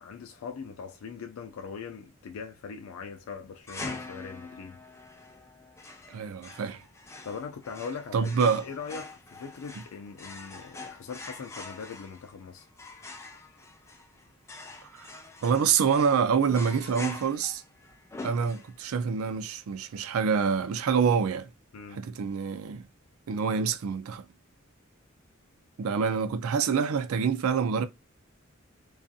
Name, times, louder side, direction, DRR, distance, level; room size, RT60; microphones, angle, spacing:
voice 1, 0.0-4.8 7.2-12.7 21.7-22.0, left 5 dB, 85° left, 0.4 m, -41 dB
sound 1, 3.7-19.0, left 3 dB, 15° left, 0.4 m, -44 dB
voice 2, 6.1-6.8 8.1-8.7 14.9-17.6 18.2-21.5 21.9-22.9 23.3-24.3 25.8-27.9, right 6 dB, 85° right, 0.4 m, -26 dB
2.6 x 2.4 x 2.4 m
head